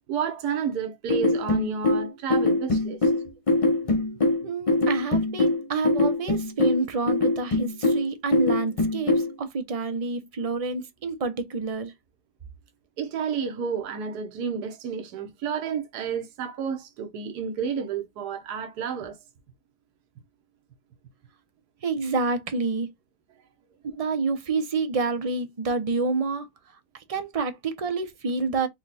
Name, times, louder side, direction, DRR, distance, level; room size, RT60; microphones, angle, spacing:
voice 1, 0.1-3.1 13.0-19.2, right 6 dB, 75° right, 1.4 m, -31 dB
sound 1, 1.1-9.3, left 2 dB, 45° left, 0.4 m, -23 dB
voice 2, 4.4-11.9 21.8-22.9 24.0-26.5 26.9-28.7, right 4 dB, 40° right, 0.5 m, -28 dB
4.4 x 2.4 x 4.0 m
omnidirectional pair, 1.7 m